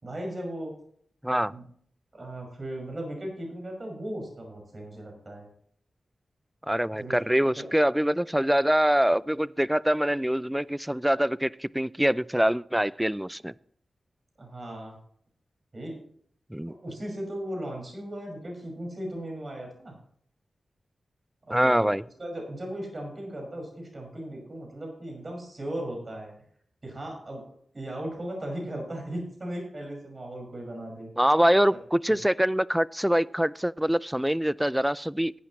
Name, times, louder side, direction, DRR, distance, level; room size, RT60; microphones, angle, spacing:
voice 1, 0.0-0.7 1.5-1.6 2.1-5.5 7.0-7.2 7.4-7.6 14.4-15.0 15.7-16.0 16.7-19.9 21.5-21.9 22.2-26.3 26.8-27.4 27.7-31.1 31.7-31.8, right 1 dB, 45° right, 5.8 m, -37 dB
voice 2, 1.2-1.5 6.7-13.5 16.5-16.7 21.5-22.0 31.2-35.3, equal, 5° right, 0.3 m, -24 dB
15.5 x 9.5 x 3.2 m
cardioid pair, 45°, 0 cm